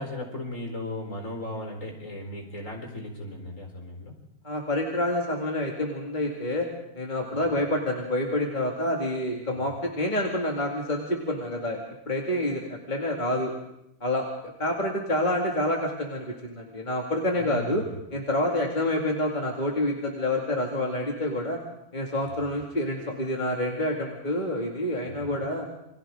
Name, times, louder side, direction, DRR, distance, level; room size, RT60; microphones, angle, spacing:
voice 1, 0.0-4.1 7.3-7.5 9.6-9.7 17.4-17.9 22.2-22.4 25.1-25.4, left 1 dB, 55° left, 1 dB, 4.8 m, -37 dB
voice 2, 4.4-6.7 6.9-11.8 12.1-13.5 14.0-14.3 14.6-17.8 18.1-21.6 21.9-25.7, left 1 dB, 30° left, -1 dB, 2.4 m, -28 dB
28.5 x 24.0 x 3.8 m, 0.79 s
omnidirectional pair, 1.6 m